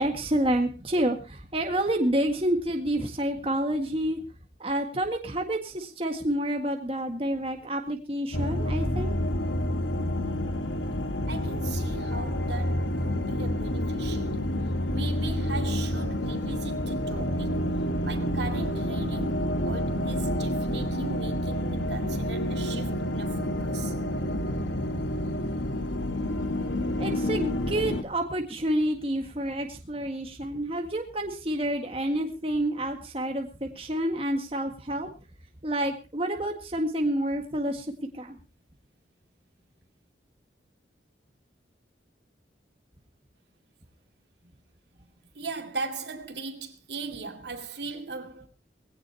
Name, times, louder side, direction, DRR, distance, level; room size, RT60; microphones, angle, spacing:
voice 1, 0.0-4.2 4.6-9.1 27.0-35.1 35.6-37.9 38.1-38.4, right 1 dB, 30° right, 1.8 m, -28 dB
sound 1, 8.3-28.0, equal, 85° left, 1.6 m, -29 dB
voice 2, 11.3-14.6 14.9-17.7 18.0-23.9 45.3-48.5, right 3 dB, 65° right, 2.4 m, -38 dB
21.0 x 16.5 x 2.9 m
head